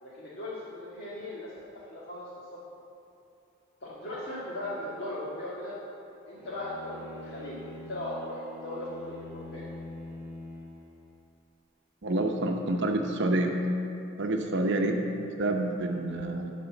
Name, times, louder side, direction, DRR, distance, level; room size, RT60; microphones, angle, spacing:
voice 1, 0.0-1.5 1.9-2.3 3.8-5.8 6.3-9.7 14.5-14.7, left 1 dB, 50° left, -9 dB, 1.8 m, -38 dB
Bowed string instrument, 6.4-11.2, left 1 dB, 5° right, 1.1 m, -44 dB
voice 2, 12.0-13.6 14.2-16.5, right 1 dB, 60° right, 3 dB, 0.7 m, -28 dB
11.5 x 4.3 x 7.1 m, 2.7 s
head